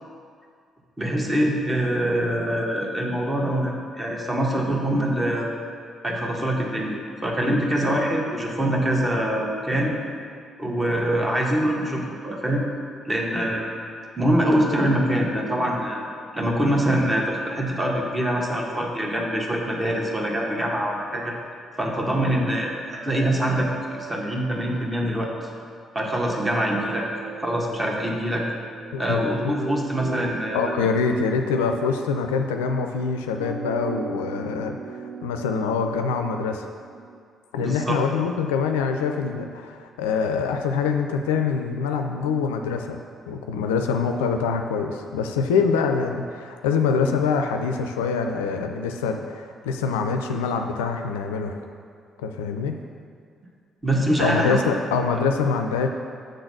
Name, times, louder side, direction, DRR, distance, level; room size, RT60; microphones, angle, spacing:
voice 1, 1.0-5.5 6.0-9.9 10.6-12.7 13.1-13.7 14.2-16.0 16.3-21.3 21.8-25.3 25.9-28.4 29.0-30.6 37.6-37.9 53.8-54.6, right 1 dB, 20° right, -1 dB, 1.5 m, -24 dB
sound 1, 22.9-25.8 26.2-37.2, right 5 dB, 45° right, 0.4 m, -38 dB
voice 2, 28.9-29.5 30.5-36.7 37.5-43.0 43.3-51.6 52.2-52.8 54.2-55.9, left 5 dB, 75° left, 5 dB, 0.4 m, -25 dB
6.4 x 3.9 x 6.3 m, 2.2 s
figure-of-eight pair, 45°, 0 cm